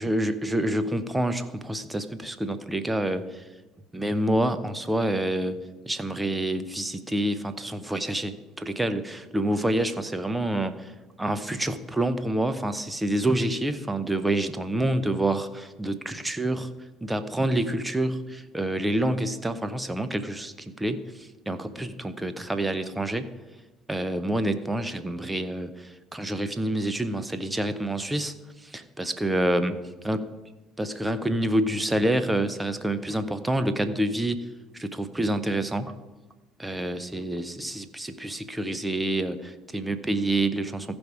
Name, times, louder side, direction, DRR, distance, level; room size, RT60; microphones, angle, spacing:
voice 1, 0.0-3.4 3.9-5.6 5.9-10.9 11.2-16.7 17.0-23.3 23.9-28.3 28.6-29.7 30.0-30.2 30.8-34.4 34.7-35.9 36.6-41.0, right 1 dB, 10° right, 11 dB, 0.9 m, -27 dB
15.0 x 5.3 x 4.9 m, 1.2 s
hypercardioid pair, 65°, 0 cm